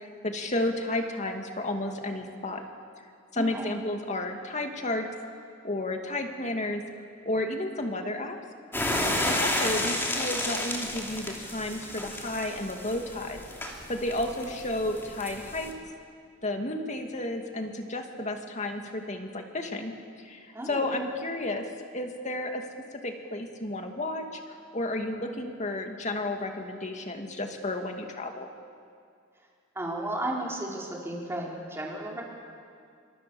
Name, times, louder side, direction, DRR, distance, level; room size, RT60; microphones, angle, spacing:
voice 1, 0.0-2.6 3.3-5.1 5.6-6.8 7.3-8.4 9.2-13.4 13.9-15.7 16.4-19.9 20.2-21.7 21.9-22.6 22.9-28.5, left 1 dB, 35° left, 4 dB, 2.3 m, -32 dB
voice 2, 3.3-3.7 9.2-9.4 20.5-20.9 29.7-32.2, right 1 dB, 10° right, -3 dB, 4.5 m, -34 dB
sound 1, 8.7-15.7, left 1 dB, 10° left, 2.9 m, -32 dB
27.0 x 25.0 x 7.1 m, 2.3 s
head